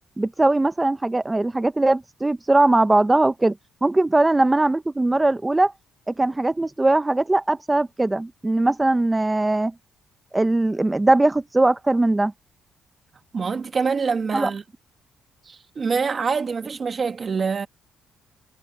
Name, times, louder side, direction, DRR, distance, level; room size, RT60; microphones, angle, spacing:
voice 1, 0.2-3.5 3.8-5.7 6.1-9.7 10.3-12.3 14.3-14.5, right 2 dB, 15° right, 0.8 m, -20 dB
voice 2, 13.3-14.6 15.5-17.7, right 5 dB, 40° right, 1.7 m, -25 dB
cardioid pair, 90°, 0 cm